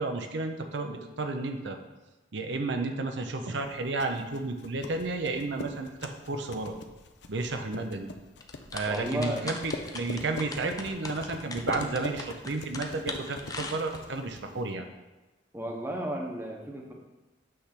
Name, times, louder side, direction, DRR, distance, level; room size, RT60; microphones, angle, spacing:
voice 1, 0.0-1.8 2.3-6.8 7.3-8.1 8.7-14.8, right 3 dB, 65° right, 5 dB, 0.6 m, -32 dB
sound 1, 3.7-14.7, left 3 dB, 65° left, 0.6 m, -42 dB
sound 2, 8.4-14.2, left 3 dB, 20° left, 0.5 m, -40 dB
voice 2, 8.9-9.4 14.5-14.6 15.5-16.9, right 1 dB, 15° right, 0 dB, 0.9 m, -33 dB
8.6 x 3.4 x 5.8 m, 1.1 s
head